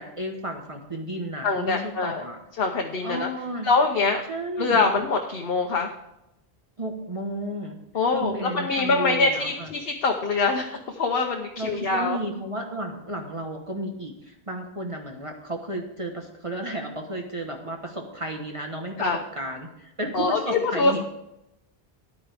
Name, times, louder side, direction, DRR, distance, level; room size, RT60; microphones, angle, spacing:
voice 1, 0.0-2.4 3.0-3.7 4.3-4.9 6.8-7.8 8.1-9.7 11.6-19.1 19.4-21.0, right 1 dB, 30° right, 2 dB, 1.3 m, -33 dB
voice 2, 1.4-2.2 2.6-3.3 3.6-4.2 4.6-5.9 7.9-12.2 19.0-19.2 20.1-21.0, left 3 dB, 70° left, 3 dB, 1.1 m, -24 dB
13.5 x 9.9 x 3.5 m, 0.86 s
omnidirectional pair, 1.0 m